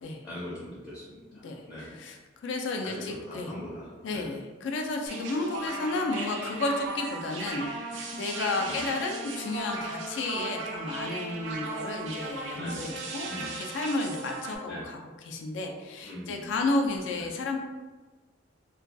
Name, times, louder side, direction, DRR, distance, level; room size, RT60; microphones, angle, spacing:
voice 1, 0.2-1.9 2.8-4.3 8.6-8.9 12.5-13.0 13.2-13.5 14.7-14.9 16.0-16.4 17.2-17.3, left 1 dB, 15° left, -8 dB, 0.5 m, -41 dB
voice 2, 1.4-3.5 4.0-17.6, left 2 dB, 75° left, 2 dB, 0.3 m, -32 dB
sound 1, 5.1-14.6, right 3 dB, 80° right, 0.4 m, -37 dB
2.2 x 2.2 x 2.5 m, 1.3 s
head